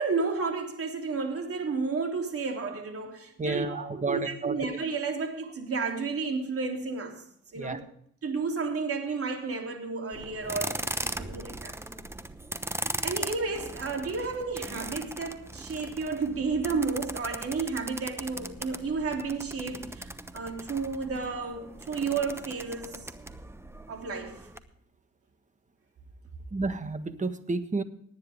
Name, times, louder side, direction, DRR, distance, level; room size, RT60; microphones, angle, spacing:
voice 1, 0.0-7.2 7.5-7.8 8.2-10.8 11.2-11.7 13.0-23.1 23.9-24.4, right 4 dB, 50° right, 3.3 m, -32 dB
voice 2, 3.4-4.6 7.5-7.8 26.5-27.8, right 3 dB, 25° right, 1.5 m, -31 dB
sound 1, 10.1-24.6, right 1 dB, 10° right, 0.9 m, -39 dB
19.0 x 9.7 x 3.6 m
cardioid pair, 90°, 30 cm